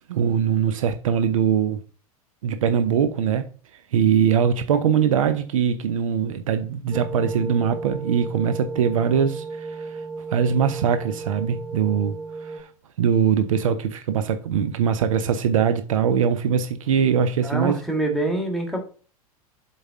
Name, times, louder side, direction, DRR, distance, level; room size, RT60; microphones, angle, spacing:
voice 1, 0.1-1.8 2.4-3.5 3.9-10.0 10.3-12.2 12.4-12.7 13.0-17.8, right 7 dB, 60° right, 0.7 m, -22 dB
sound 1, 6.9-12.6, right 4 dB, 15° right, 1.1 m, -34 dB
voice 2, 17.4-18.8, right 2 dB, ahead, 1.8 m, -25 dB
7.8 x 4.1 x 3.7 m
figure-of-eight pair, 85°, 19 cm